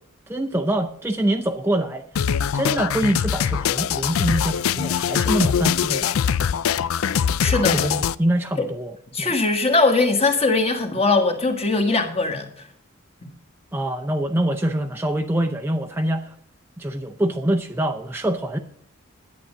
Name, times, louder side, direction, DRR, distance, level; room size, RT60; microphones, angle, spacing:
voice 1, 0.3-2.0 2.5-6.3 7.4-8.9 9.2-9.3 13.7-16.3 16.8-18.6, right 1 dB, 10° right, 3 dB, 0.6 m, -24 dB
sound 1, 2.2-8.2, left 8 dB, 85° left, 0.4 m, -22 dB
voice 2, 7.4-7.9 8.6-8.7 9.1-12.5, left 3 dB, 30° left, 5 dB, 1.5 m, -20 dB
11.0 x 8.6 x 6.4 m, 0.64 s
head